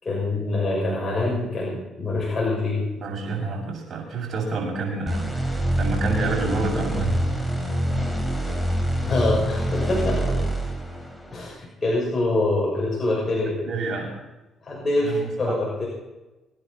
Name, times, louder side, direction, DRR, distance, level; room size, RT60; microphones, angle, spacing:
voice 1, 0.0-2.9 9.1-10.4 11.3-11.6 11.8-13.6 14.6-15.9, left 2 dB, 35° left, -4 dB, 6.5 m, -25 dB
voice 2, 3.0-7.2 13.7-14.1 15.0-15.5, right 3 dB, 60° right, 0 dB, 7.3 m, -28 dB
sound 1, 5.1-11.5, equal, 5° left, 4.2 m, -25 dB
27.0 x 10.0 x 4.3 m, 1.0 s
cardioid pair, 85°, 0 cm